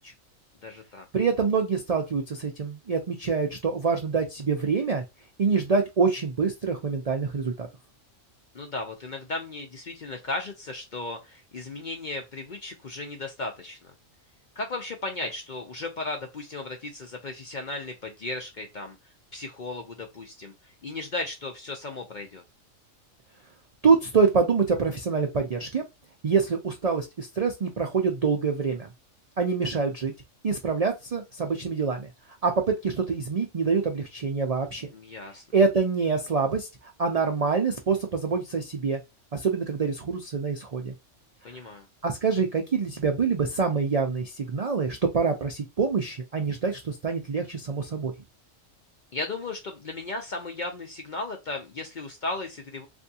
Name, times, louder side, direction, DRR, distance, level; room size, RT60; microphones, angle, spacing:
voice 1, 0.6-1.1 8.5-13.9 14.6-19.0 19.3-22.4 34.9-35.4 41.4-41.9 49.1-52.9, left 2 dB, 50° left, 3 dB, 0.6 m, -35 dB
voice 2, 1.1-5.0 5.4-7.7 23.8-25.8 26.2-28.9 29.4-30.1 30.4-32.1 32.4-34.9 35.5-36.7 37.0-39.0 39.3-40.9 42.0-48.1, right 5 dB, 60° right, 3 dB, 0.4 m, -25 dB
3.5 x 2.6 x 2.7 m, 0.23 s
omnidirectional pair, 1.4 m